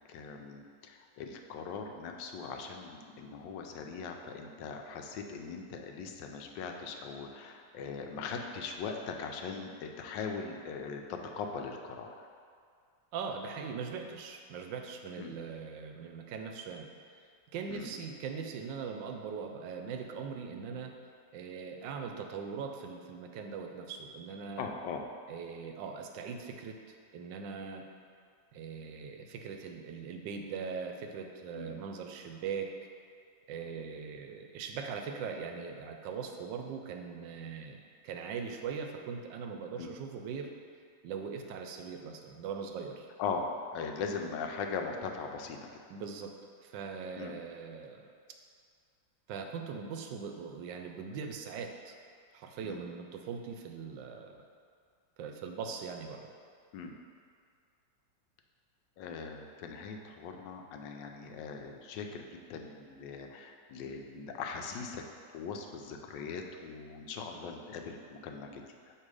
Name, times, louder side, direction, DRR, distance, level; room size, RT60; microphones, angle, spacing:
voice 1, 0.1-12.3 15.2-15.3 17.7-17.9 24.6-25.0 31.5-31.7 39.8-39.9 43.2-43.5 43.7-45.6 47.2-47.4 52.6-52.8 56.7-56.9 59.0-65.0 65.3-68.9, left 5 dB, 80° left, 3 dB, 1.2 m, -40 dB
voice 2, 13.1-16.9 17.5-20.9 21.3-24.7 25.3-26.8 27.1-27.9 28.5-32.7 33.5-40.5 41.0-43.1 45.9-46.3 46.6-48.1 49.3-52.0 52.3-54.4 55.2-56.2, right 6 dB, 80° right, 4 dB, 1.3 m, -40 dB
6.7 x 3.0 x 4.8 m, 2.2 s
omnidirectional pair, 1.9 m